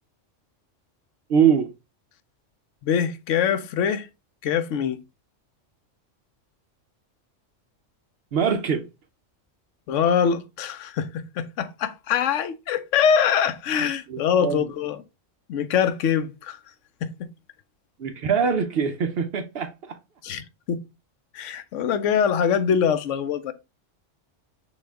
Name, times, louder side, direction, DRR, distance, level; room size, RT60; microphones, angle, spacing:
voice 1, 1.3-1.7 8.3-8.9 14.1-14.6 18.0-19.7, right 7 dB, 60° right, 0.8 m, -22 dB
voice 2, 2.8-4.1 4.4-5.0 9.9-15.0 15.5-16.6 17.0-17.3 20.2-20.8 21.3-23.5, left 7 dB, 80° left, 0.9 m, -23 dB
6.2 x 2.3 x 3.4 m
omnidirectional pair, 1.3 m